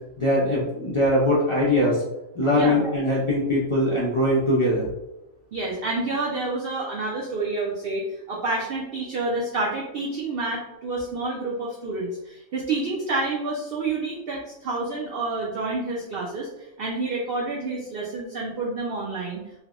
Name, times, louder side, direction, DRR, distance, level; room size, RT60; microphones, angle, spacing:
voice 1, 0.2-2.0 2.3-4.9, left 1 dB, 55° left, -6 dB, 0.3 m, -21 dB
voice 2, 5.5-19.4, right 3 dB, 65° right, -3 dB, 0.6 m, -29 dB
3.2 x 2.1 x 2.4 m, 0.89 s
omnidirectional pair, 1.4 m